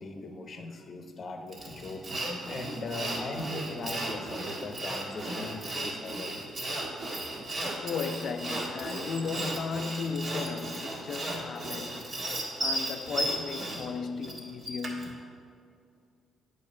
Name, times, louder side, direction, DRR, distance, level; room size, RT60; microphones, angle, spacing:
voice 1, 0.0-6.4, left 2 dB, 45° left, 0.8 m, -39 dB
Sawing, 1.5-15.1, right 1 dB, 45° right, 1.7 m, -35 dB
voice 2, 7.8-12.1 12.6-15.2, left 5 dB, 65° left, 0.4 m, -35 dB
8.5 x 4.0 x 6.5 m
cardioid pair, 90°, 0 cm